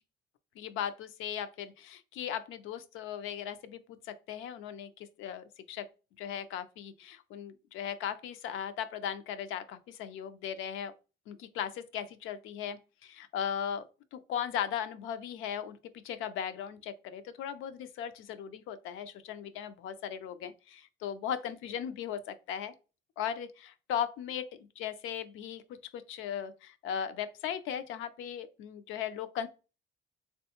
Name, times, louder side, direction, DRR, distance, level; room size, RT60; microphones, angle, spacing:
voice 1, 0.6-5.9 6.2-10.9 11.3-13.9 14.1-15.8 16.0-22.7 23.2-25.6 25.9-29.5, left 9 dB, 90° left, 0.4 m, -37 dB
3.5 x 2.2 x 2.8 m
cardioid pair, 90°, 20 cm